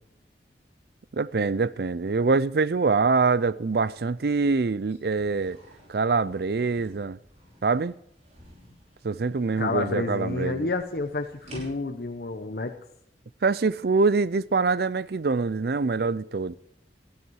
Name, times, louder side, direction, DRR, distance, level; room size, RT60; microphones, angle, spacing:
voice 1, 1.1-5.6 5.9-7.2 7.6-8.0 9.0-10.7 13.4-16.5, right 4 dB, 60° right, 0.5 m, -24 dB
sound 1, 4.7-12.1, equal, 40° right, 5.8 m, -51 dB
voice 2, 9.6-12.7, left 3 dB, 60° left, 0.9 m, -29 dB
19.0 x 12.5 x 4.7 m
head